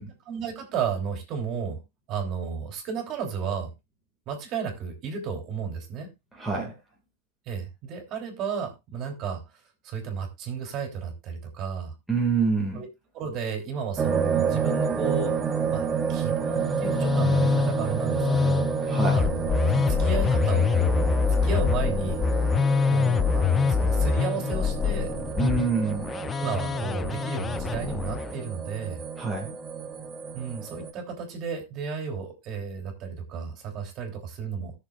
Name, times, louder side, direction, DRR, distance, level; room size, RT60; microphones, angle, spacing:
voice 1, 0.3-1.8 2.1-3.7 4.3-6.1 7.4-9.4 9.8-11.9 12.7-12.9 13.1-15.4 15.7-19.5 19.7-21.1 21.4-22.2 22.9-25.1 26.4-29.0 30.3-34.7, right 6 dB, 35° right, 3 dB, 3.1 m, -33 dB
voice 2, 6.4-6.7 12.1-12.8 18.8-19.2 25.4-26.1 29.2-29.6, right 4 dB, ahead, -3 dB, 2.2 m, -26 dB
sound 1, 14.0-30.9, right 6 dB, 20° right, 1.0 m, -30 dB
Musical instrument, 16.6-28.3, left 5 dB, 15° left, 0.4 m, -25 dB
17.5 x 6.7 x 2.5 m, 0.23 s
supercardioid pair, 155°, 0 cm